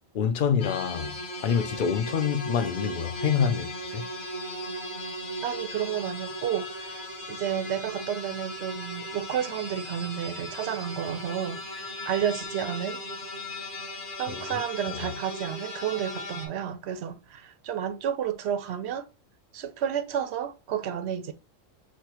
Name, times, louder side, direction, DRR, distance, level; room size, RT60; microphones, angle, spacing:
voice 1, 0.1-1.2 1.4-4.1 14.3-15.1, left 7 dB, 60° left, 0.6 m, -27 dB
sound 1, 0.6-16.5, left 1 dB, 40° left, 1.1 m, -37 dB
voice 2, 5.4-7.0 7.3-13.0 14.2-19.1 19.5-21.3, right 9 dB, 65° right, 0.7 m, -31 dB
6.4 x 2.2 x 2.8 m
omnidirectional pair, 1.3 m